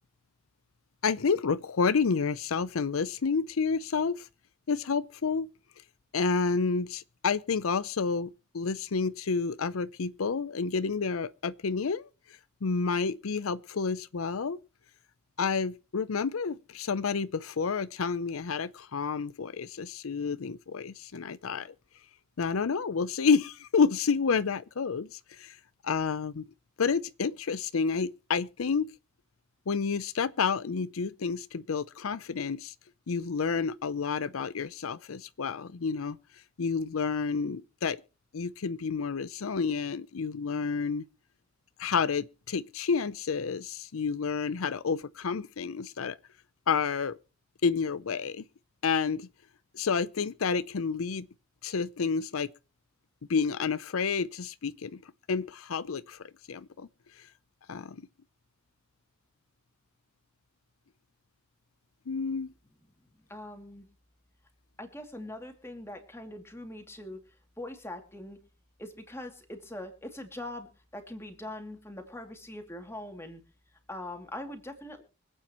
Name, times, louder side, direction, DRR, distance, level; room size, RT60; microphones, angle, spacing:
voice 1, 1.0-4.3 4.7-5.5 6.1-12.1 12.6-14.6 15.4-21.7 22.4-25.6 25.8-26.5 26.8-28.9 29.7-32.7 33.1-36.2 36.6-38.0 38.3-41.0 41.8-46.2 46.7-47.2 47.6-48.4 48.8-49.3 49.7-51.3 51.6-52.5 53.3-56.9 57.2-57.3 57.7-58.0 62.1-62.5, left 5 dB, 85° left, 0.6 m, -30 dB
voice 2, 63.1-63.9 64.8-67.2 67.6-68.4 68.8-73.4 73.9-75.0, left 1 dB, 10° left, 2.6 m, -42 dB
24.5 x 8.8 x 3.0 m
head